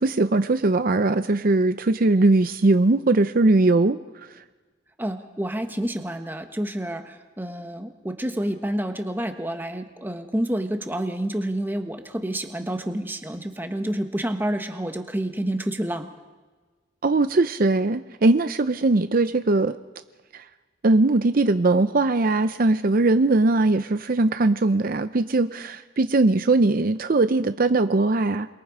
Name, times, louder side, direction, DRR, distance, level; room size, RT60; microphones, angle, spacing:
voice 1, 0.0-4.0 4.3-4.4 17.0-19.8 20.3-20.4 20.8-28.5, right 2 dB, 50° right, 11 dB, 0.6 m, -20 dB
voice 2, 5.0-16.1, right 1 dB, 10° right, 6 dB, 1.4 m, -29 dB
28.5 x 22.0 x 5.0 m, 1.3 s
head